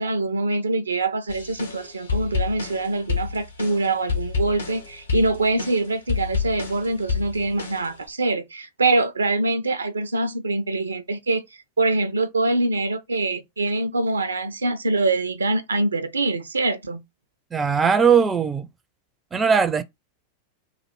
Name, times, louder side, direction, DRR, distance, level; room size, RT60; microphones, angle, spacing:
voice 1, 0.0-11.4 11.8-17.0, right 2 dB, 75° right, 0.5 m, -24 dB
sound 1, 1.3-8.1, left 5 dB, 70° left, 1.3 m, -29 dB
voice 2, 17.5-18.7 19.3-19.8, right 6 dB, 15° right, 0.5 m, -19 dB
3.2 x 2.4 x 4.3 m
figure-of-eight pair, 90°, 0 cm